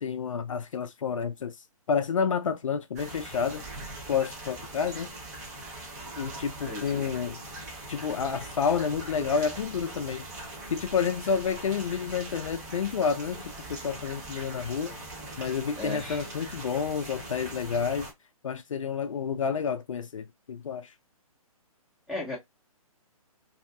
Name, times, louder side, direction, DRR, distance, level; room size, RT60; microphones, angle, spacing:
voice 1, 0.0-1.6 1.9-3.6 4.1-5.1 6.2-7.4 7.9-10.3 10.7-15.0 15.4-18.1 18.4-20.9, left 6 dB, 60° left, 0.4 m, -29 dB
sound 1, 3.0-18.1, right 2 dB, 30° right, 0.9 m, -41 dB
voice 2, 6.7-7.1 15.8-16.2 22.1-22.4, left 2 dB, ahead, 0.6 m, -36 dB
2.6 x 2.2 x 2.5 m
figure-of-eight pair, 135°, 19 cm